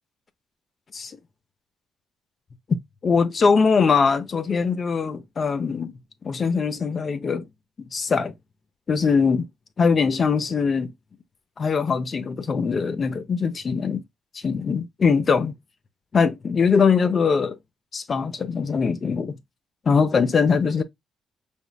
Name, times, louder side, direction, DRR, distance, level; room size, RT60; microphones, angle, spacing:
voice 1, 2.7-5.9 6.2-7.5 7.9-8.3 8.9-9.5 9.8-10.9 11.6-14.0 14.3-15.6 16.1-17.6 17.9-19.4 19.9-20.8, left 5 dB, 40° left, 0.6 m, -22 dB
5.0 x 3.6 x 2.3 m
cardioid pair, 90°, 0 cm